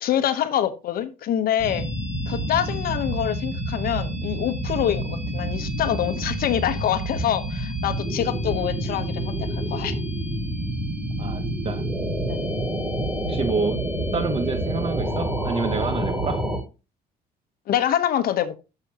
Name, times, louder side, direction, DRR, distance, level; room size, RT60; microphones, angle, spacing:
voice 1, 0.0-1.9 2.3-10.0 12.3-12.5 17.7-18.6, left 10 dB, 60° left, 1.1 m, -25 dB
sound 1, 1.6-16.6, right 1 dB, 10° right, 3.0 m, -28 dB
voice 2, 11.2-11.9 13.3-13.8 14.1-16.4, right 4 dB, 35° right, 1.3 m, -28 dB
11.0 x 6.9 x 3.0 m
cardioid pair, 110°, 17 cm